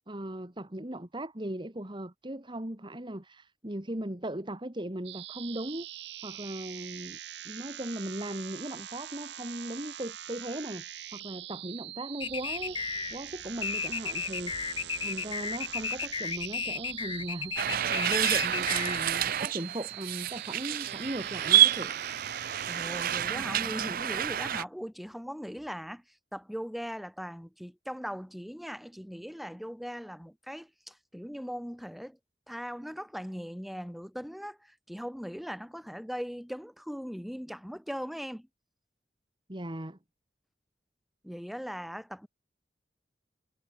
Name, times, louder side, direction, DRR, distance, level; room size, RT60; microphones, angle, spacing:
voice 1, 0.1-5.9 6.2-7.2 7.4-12.8 13.1-21.9 39.5-40.0, right 1 dB, 25° right, 2.0 m, -38 dB
sound 1, 5.0-23.3, right 12 dB, 70° right, 1.9 m, -43 dB
sound 2, 12.2-19.3, left 5 dB, 30° left, 3.4 m, -34 dB
sound 3, 17.6-24.6, right 11 dB, 50° right, 0.5 m, -28 dB
voice 2, 22.6-26.0 26.3-32.2 32.5-38.5 41.2-42.3, equal, ahead, 5.7 m, -39 dB
head